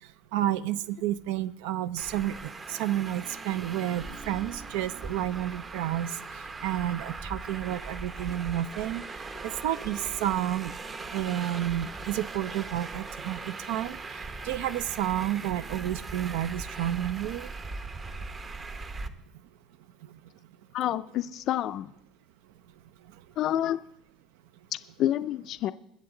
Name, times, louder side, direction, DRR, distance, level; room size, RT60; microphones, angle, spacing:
voice 1, 0.3-2.4 2.7-6.1 6.6-9.0 9.4-10.7 11.1-14.0 14.4-17.5, right 12 dB, 90° right, 15 dB, 0.5 m, -30 dB
Traffic noise roadway noise, 2.0-19.1, right 3 dB, 25° right, 0.7 m, -40 dB
voice 2, 20.7-21.9 23.4-23.8 25.0-25.7, left 12 dB, 50° left, 11 dB, 0.4 m, -28 dB
21.0 x 7.2 x 3.8 m, 0.79 s
cardioid pair, 150°, 0 cm